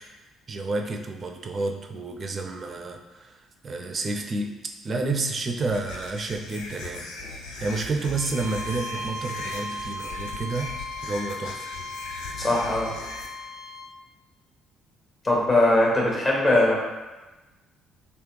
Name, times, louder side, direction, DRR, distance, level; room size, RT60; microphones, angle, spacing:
voice 1, 0.5-4.6 4.8-7.1 7.6-11.7, right 3 dB, 35° right, 4 dB, 0.4 m, -30 dB
sound 1, 5.6-13.3, left 2 dB, 65° left, 0.4 m, -39 dB
Bowed string instrument, 8.1-13.9, left 2 dB, 90° left, 1.2 m, -37 dB
voice 2, 12.4-12.9 15.2-16.8, left 1 dB, 35° left, -4 dB, 1.2 m, -20 dB
3.2 x 2.9 x 3.0 m, 1.1 s
figure-of-eight pair, 45°, 0 cm